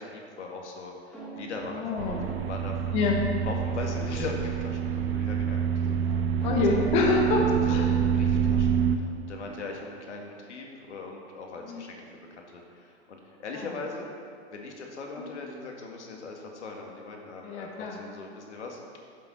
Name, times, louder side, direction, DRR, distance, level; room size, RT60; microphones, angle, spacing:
voice 1, 0.0-2.8 3.4-6.3 7.6-7.8 8.1-14.1 14.5-18.8, left 3 dB, 85° left, 1 dB, 2.0 m, -40 dB
sound 1, 1.1-4.9 6.4-10.0, right 4 dB, ahead, 1.1 m, -43 dB
voice 2, 1.7-2.2 2.9-3.2 6.1-7.9 11.6-11.8 13.6-13.7 15.2-15.3 17.4-18.0, left 4 dB, 20° left, -1 dB, 0.8 m, -27 dB
sound 2, 2.0-9.0, right 8 dB, 60° right, 0.7 m, -27 dB
11.0 x 7.6 x 4.3 m, 2.4 s
hypercardioid pair, 165°, 34 cm